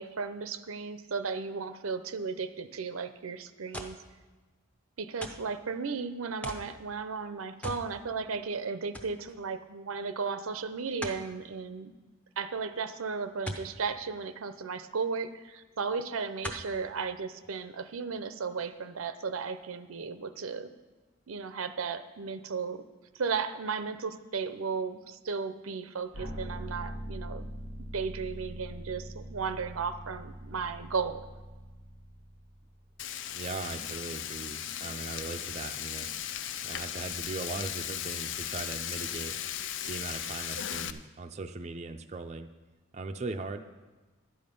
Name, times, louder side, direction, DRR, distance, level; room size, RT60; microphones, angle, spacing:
voice 1, 0.0-4.0 5.0-11.9 12.4-20.7 21.3-22.8 23.1-27.5 27.9-31.2, right 5 dB, 90° right, 11 dB, 0.6 m, -35 dB
sound 1, 3.7-4.1 5.2-5.5 6.4-6.7 7.6-7.9 8.3-8.4 8.9-9.2 11.0-11.3 13.5-13.7 15.2-15.3 16.4-16.7 17.4-17.5, equal, 5° left, 0.7 m, -39 dB
sound 2, 26.1-33.1, equal, 85° left, 1.5 m, -42 dB
Frying (food), 33.0-40.9, left 10 dB, 65° left, 0.4 m, -37 dB
voice 2, 33.3-36.1 36.6-39.4 39.9-42.5 42.9-43.7, right 3 dB, 30° right, 6 dB, 0.4 m, -39 dB
11.5 x 8.7 x 5.3 m, 1.2 s
head